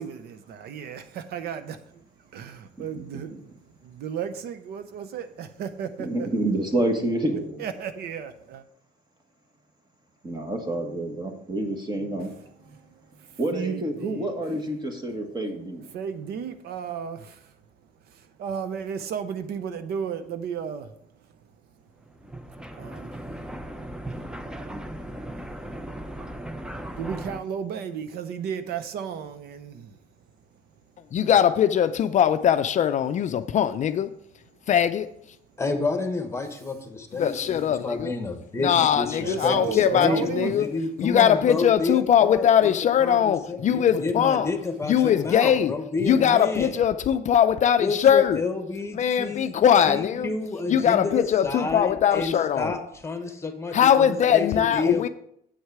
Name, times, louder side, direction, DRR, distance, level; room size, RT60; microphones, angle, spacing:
voice 1, 0.0-2.0 2.3-3.5 3.8-6.3 7.6-8.6 12.8-14.3 15.9-17.5 18.1-20.9 22.7-23.1 27.0-30.0 39.2-40.5, right 7 dB, 70° right, 0.7 m, -34 dB
voice 2, 2.8-3.4 6.0-7.6 10.2-12.3 12.6-12.8 13.4-15.9, right 1 dB, 25° right, 1.6 m, -28 dB
sound 1, 22.0-27.4, right 1 dB, 5° right, 0.6 m, -37 dB
voice 3, 31.1-34.1 34.7-35.1 37.2-38.1 38.6-40.7 41.0-44.5 44.9-45.7 46.1-48.4 49.0-50.3 50.7-52.7 53.7-55.1, left 9 dB, 45° left, 0.4 m, -21 dB
voice 4, 35.6-42.7 43.0-46.8 47.8-49.5 49.9-55.1, left 3 dB, 15° left, 1.2 m, -30 dB
8.1 x 6.4 x 4.7 m
cardioid pair, 110°, 17 cm